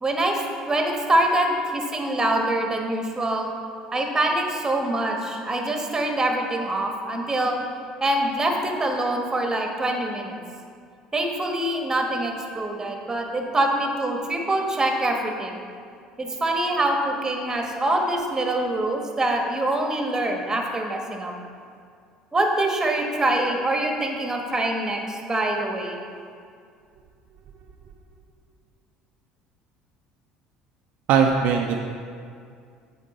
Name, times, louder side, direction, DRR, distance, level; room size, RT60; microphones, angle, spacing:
voice 1, 0.0-3.5 3.9-7.6 8.0-10.4 11.1-15.6 16.2-21.3 22.3-26.0, right 1 dB, 20° right, 2 dB, 1.2 m, -24 dB
voice 2, 31.1-31.8, right 6 dB, 60° right, 2 dB, 0.5 m, -19 dB
8.4 x 4.1 x 4.1 m, 2.2 s
hypercardioid pair, 70°, 3 cm